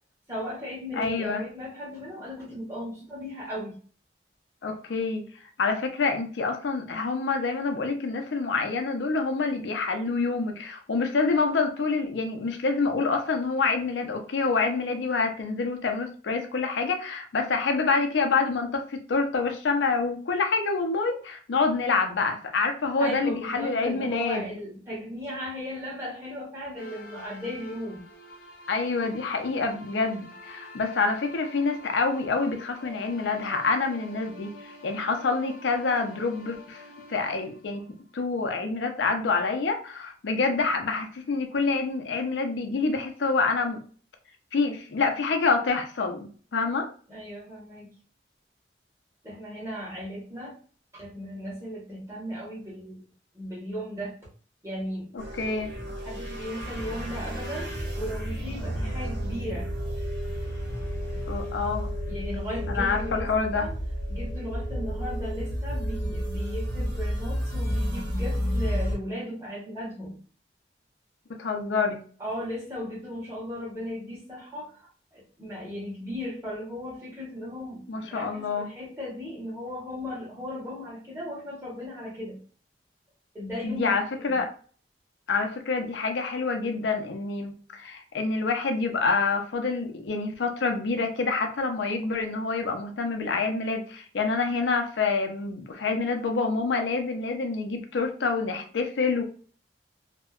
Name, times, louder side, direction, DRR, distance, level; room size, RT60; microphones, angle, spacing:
voice 1, 0.3-3.8 23.0-28.0 47.1-47.9 49.2-50.6 50.9-53.0 53.3-54.2 54.6-55.1 55.9-57.7 57.9-59.7 62.1-63.8 64.1-70.2 72.2-82.4 83.3-84.4, left 1 dB, 15° right, -6 dB, 1.1 m, -36 dB
voice 2, 1.0-1.4 4.6-5.3 5.6-24.5 28.7-34.5 34.8-36.8 37.1-37.9 38.1-43.8 44.5-46.9 55.4-55.7 61.3-61.9 62.7-63.6 71.4-72.0 77.9-78.7 83.6-84.5 85.3-99.2, left 4 dB, 90° left, 5 dB, 0.5 m, -27 dB
sound 1, 26.8-38.6, left 1 dB, 55° left, 0.7 m, -48 dB
sound 2, 55.2-68.9, equal, 70° right, 1.0 m, -31 dB
2.7 x 2.1 x 2.4 m, 0.42 s
head